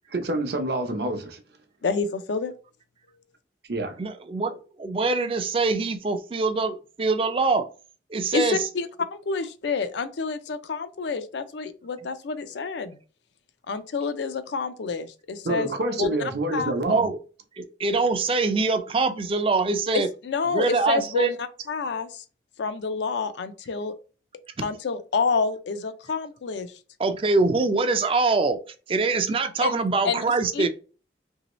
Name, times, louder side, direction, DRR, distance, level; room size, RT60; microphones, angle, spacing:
voice 1, 0.1-1.4 3.7-4.0 15.4-17.1, right 1 dB, 65° right, 0.6 m, -27 dB
voice 2, 1.8-2.5 8.3-13.0 13.7-15.7 16.0-16.1 16.5-16.7 19.9-22.2 22.6-23.9 24.6-26.7 29.6-29.8 30.0-30.2 30.5-30.7, left 4 dB, 75° left, 0.4 m, -28 dB
voice 3, 4.0-7.7 8.1-8.6 16.9-17.2 17.6-20.1 20.5-21.3 24.6-24.7 27.0-28.6 28.9-30.7, right 3 dB, 30° right, 0.3 m, -24 dB
3.0 x 2.7 x 3.0 m
head